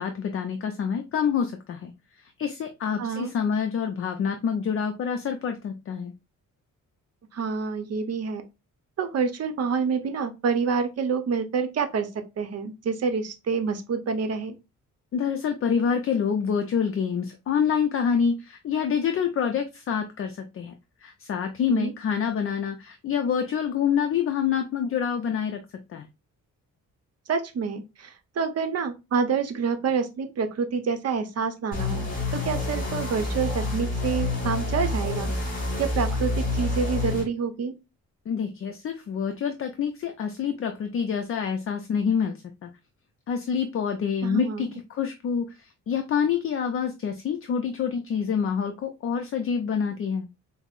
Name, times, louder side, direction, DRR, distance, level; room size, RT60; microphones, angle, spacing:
voice 1, 0.0-6.1 15.1-20.7 21.0-25.6 25.9-26.1 38.3-42.7 43.3-50.3, left 7 dB, 45° left, 0.4 m, -27 dB
voice 2, 3.0-3.3 7.3-8.4 9.0-12.1 12.4-14.6 21.7-21.9 27.3-35.3 35.8-37.7 44.2-44.8, right 5 dB, 50° right, 0.7 m, -27 dB
sound 1, 31.7-37.2, left 2 dB, 25° left, 1.8 m, -28 dB
5.3 x 2.0 x 2.4 m
cardioid pair, 115°, 32 cm